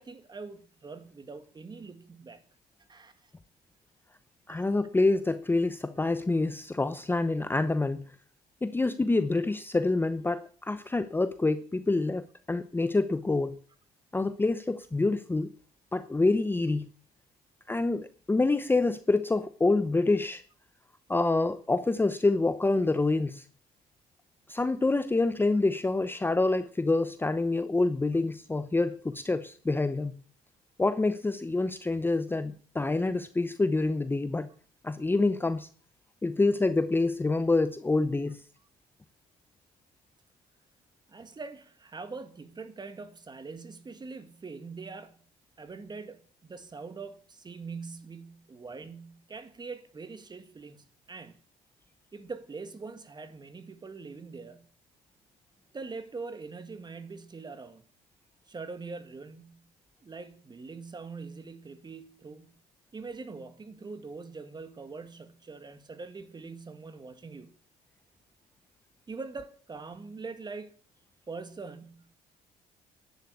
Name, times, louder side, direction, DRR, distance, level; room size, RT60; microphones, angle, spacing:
voice 1, 0.0-2.4 2.9-3.3 4.5-4.7 41.1-45.2 45.6-51.4 52.1-54.7 55.7-57.8 58.5-59.7 60.0-62.6 62.9-67.6 69.1-70.7 71.3-72.2, right 4 dB, 25° right, 1.9 m, -43 dB
voice 2, 4.5-8.1 8.6-13.6 14.1-15.5 15.9-16.9 17.7-20.4 21.1-23.4 24.5-30.1 30.8-34.5 34.8-35.7 36.2-38.4, left 3 dB, 10° left, 0.7 m, -27 dB
11.5 x 9.1 x 8.4 m
cardioid pair, 110°, 17 cm